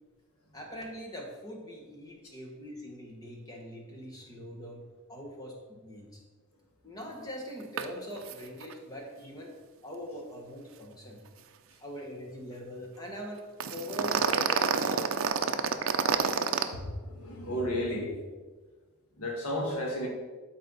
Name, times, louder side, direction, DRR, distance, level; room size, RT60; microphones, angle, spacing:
voice 1, 0.5-4.8 5.1-5.5 5.8-6.2 6.8-9.5 9.8-11.2 11.8-13.4 13.7-15.1, equal, 15° left, -1 dB, 1.4 m, -42 dB
sound 1, 7.8-7.9 8.2-8.3 8.6-8.7 13.6-16.6, right 6 dB, 65° right, 0.5 m, -27 dB
voice 2, 16.7-18.1 19.2-20.1, left 1 dB, 90° left, -1 dB, 2.0 m, -33 dB
12.0 x 4.3 x 4.1 m, 1.4 s
head